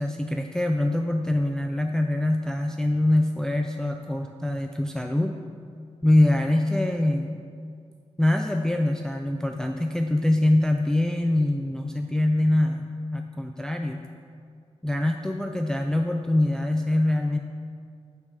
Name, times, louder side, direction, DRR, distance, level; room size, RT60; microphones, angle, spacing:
voice 1, 0.0-5.3 6.0-7.4 8.2-14.0 14.8-17.4, left 1 dB, 5° left, 4 dB, 0.3 m, -24 dB
5.4 x 4.9 x 6.2 m, 2.2 s
cardioid pair, 65°, 12 cm